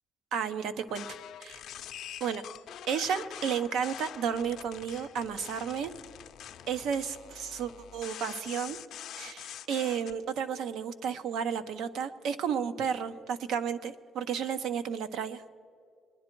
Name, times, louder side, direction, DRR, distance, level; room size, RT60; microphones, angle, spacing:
voice 1, 0.3-1.1 1.4-1.6 2.2-2.4 2.9-5.9 6.7-8.8 9.2-15.4, right 7 dB, 75° right, 12 dB, 0.7 m, -32 dB
sound 1, 0.9-10.1, left 11 dB, 65° left, 0.5 m, -45 dB
23.0 x 10.5 x 4.5 m, 2.4 s
cardioid pair, 155°, 0 cm